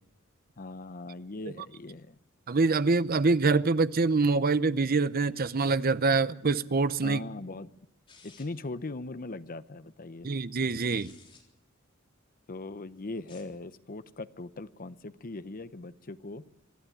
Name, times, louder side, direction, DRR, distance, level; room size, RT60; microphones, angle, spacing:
voice 1, 0.6-2.2 7.0-7.7 8.2-10.3 12.5-16.4, left 2 dB, 45° left, 0.8 m, -40 dB
voice 2, 2.5-7.2 10.2-11.1, right 3 dB, 45° right, 0.7 m, -25 dB
sound 1, 8.1-8.7 10.6-11.4 13.1-13.6, left 4 dB, 25° left, 3.7 m, -56 dB
25.0 x 12.0 x 9.7 m
head